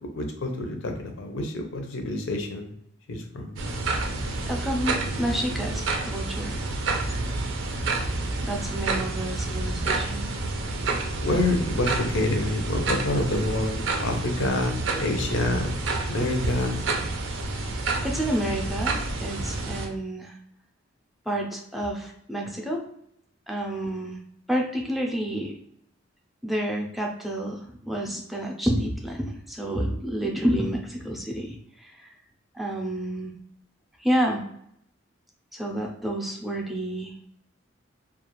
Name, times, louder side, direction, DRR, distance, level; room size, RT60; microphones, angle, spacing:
voice 1, 0.1-2.7 3.1-3.6 11.2-15.7 16.0-16.8, left 2 dB, 85° left, 4 dB, 0.6 m, -27 dB
sound 1, 3.6-19.9, right 3 dB, 75° right, 0.5 m, -29 dB
voice 2, 4.5-6.6 8.4-10.3 18.0-20.4 21.3-22.8 23.5-24.2 24.5-25.5 26.4-32.1 32.5-33.3 34.0-34.4 35.5-37.1, right 1 dB, ahead, 0 dB, 0.5 m, -29 dB
2.4 x 2.2 x 2.9 m, 0.72 s
head